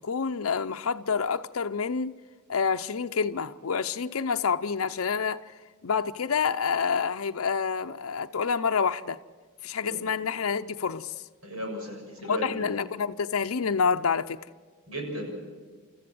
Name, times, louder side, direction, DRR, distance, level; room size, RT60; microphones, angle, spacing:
voice 1, 0.0-2.1 2.5-5.4 5.8-9.2 9.6-11.1 12.2-14.4, left 6 dB, 85° left, 0.6 m, -28 dB
voice 2, 11.4-12.7 14.9-15.5, equal, 90° right, 7.1 m, -36 dB
30.0 x 14.0 x 7.8 m
head